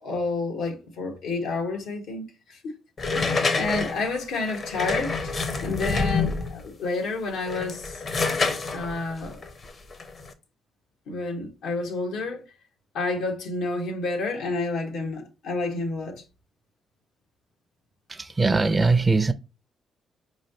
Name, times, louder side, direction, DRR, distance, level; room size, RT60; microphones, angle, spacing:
voice 1, 0.0-2.7 3.1-8.0 8.7-9.4 11.1-12.4 12.9-16.2, left 3 dB, 85° left, 1.1 m, -30 dB
sound 1, 3.0-6.7 7.4-10.3, left 4 dB, 45° left, 0.6 m, -27 dB
voice 2, 18.1-19.3, right 3 dB, 20° right, 0.4 m, -21 dB
4.7 x 3.1 x 2.7 m
cardioid pair, 90°, 0 cm